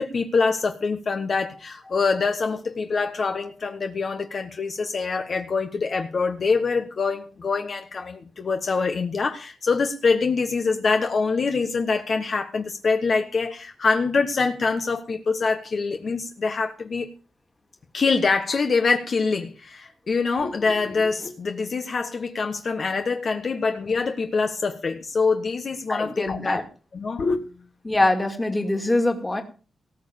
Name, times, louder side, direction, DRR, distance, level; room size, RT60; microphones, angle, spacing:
voice 1, 0.0-17.1 17.9-26.6 26.9-27.4, left 4 dB, 45° left, 1.3 m, -25 dB
voice 2, 25.9-26.6 27.8-29.4, left 2 dB, 15° left, 2.4 m, -23 dB
18.5 x 6.6 x 7.0 m
wide cardioid pair, 140°, 0 cm